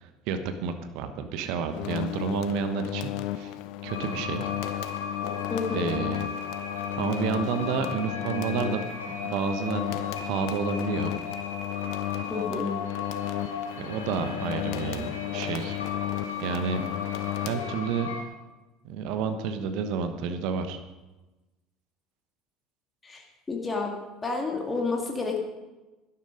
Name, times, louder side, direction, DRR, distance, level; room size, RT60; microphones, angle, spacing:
voice 1, 0.0-3.5 3.8-4.5 5.7-6.2 7.0-8.9 9.2-11.2 13.8-15.8 16.4-16.8 17.4-18.1 18.8-20.8, right 6 dB, 60° right, 9 dB, 1.1 m, -30 dB
sound 1, 1.7-18.2, left 15 dB, 60° left, 0.5 m, -34 dB
sound 2, 3.9-18.2, left 4 dB, 85° left, 1.7 m, -37 dB
voice 2, 5.5-5.8 12.3-12.7 23.0-23.9 24.2-25.4, left 4 dB, 20° left, 1 dB, 2.1 m, -30 dB
12.0 x 11.5 x 5.1 m, 1.1 s
figure-of-eight pair, 65°, 0 cm